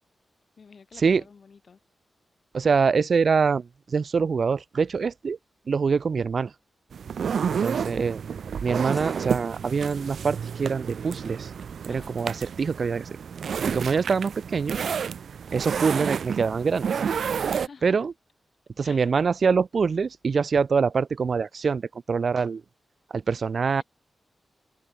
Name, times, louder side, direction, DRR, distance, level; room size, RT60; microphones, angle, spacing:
voice 1, 0.6-1.8 7.4-8.2 11.9-12.2 15.4-15.7 17.5-18.1 18.8-19.1, left 5 dB, 50° left, 5.9 m, -49 dB
voice 2, 2.5-5.4 5.7-6.5 7.5-8.2 8.6-11.5 11.9-13.1 13.6-14.8 15.5-16.8 17.8-18.1 18.8-21.8 22.1-22.6 23.1-23.8, right 5 dB, 50° right, 0.6 m, -24 dB
sound 1, 6.9-17.7, right 7 dB, 70° right, 1.2 m, -30 dB
sound 2, 8.8-14.1, equal, ahead, 3.4 m, -54 dB
wide cardioid pair, 125°, 0 cm